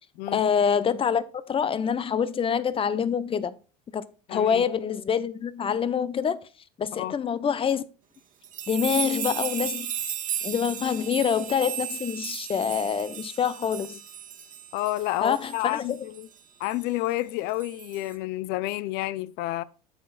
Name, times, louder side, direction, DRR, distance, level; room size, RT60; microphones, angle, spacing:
voice 1, 0.3-3.5 3.9-6.4 6.8-7.8 8.7-9.9 10.4-14.0 15.2-16.0, left 7 dB, 30° left, 0.9 m, -26 dB
voice 2, 4.3-4.7 6.9-7.2 14.7-16.3 16.6-19.6, left 16 dB, 55° left, 0.6 m, -30 dB
sound 1, 8.4-16.2 16.6-16.8 17.6-18.2, right 10 dB, 45° right, 1.7 m, -35 dB
9.7 x 7.6 x 2.4 m
hypercardioid pair, 85°, 20 cm